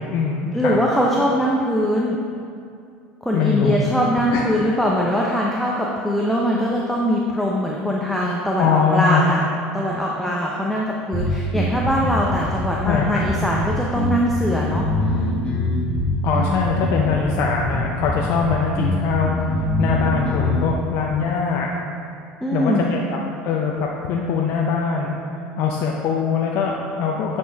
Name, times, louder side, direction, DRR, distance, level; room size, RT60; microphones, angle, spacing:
voice 1, 0.0-0.8 3.3-3.7 4.3-4.4 8.6-9.3 12.8-13.2 16.2-21.7 22.5-23.0 23.4-25.2 25.6-27.4, left 5 dB, 60° left, -1 dB, 0.6 m, -22 dB
voice 2, 0.5-2.2 3.2-9.4 9.7-15.2 22.4-23.0, equal, ahead, -3 dB, 0.7 m, -22 dB
sound 1, 11.1-20.7, left 1 dB, 20° left, 1.3 m, -24 dB
9.2 x 4.3 x 3.5 m, 2.4 s
supercardioid pair, 100°, 4 cm